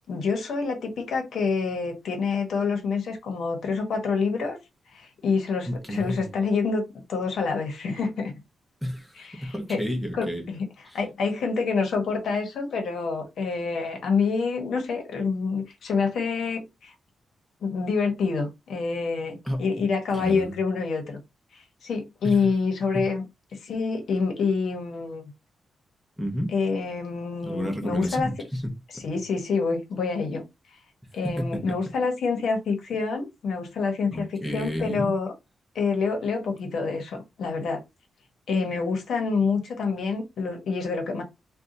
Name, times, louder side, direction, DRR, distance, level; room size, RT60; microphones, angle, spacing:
voice 1, 0.1-4.6 4.9-8.3 9.2-9.8 10.1-10.6 10.9-16.9 17.6-21.2 21.8-23.2 23.6-25.2 26.5-28.3 28.9-30.4 31.1-35.3 35.7-37.8 38.5-41.2, left 4 dB, 70° left, 1.0 m, -27 dB
voice 2, 5.7-6.4 8.8-9.1 9.4-10.5 19.4-19.6 20.1-20.5 22.2-22.4 22.9-23.1 26.2-26.5 27.4-29.0 31.2-31.8 34.1-35.1, equal, ahead, 0.7 m, -31 dB
2.7 x 2.2 x 3.8 m
wide cardioid pair, 165°, 0 cm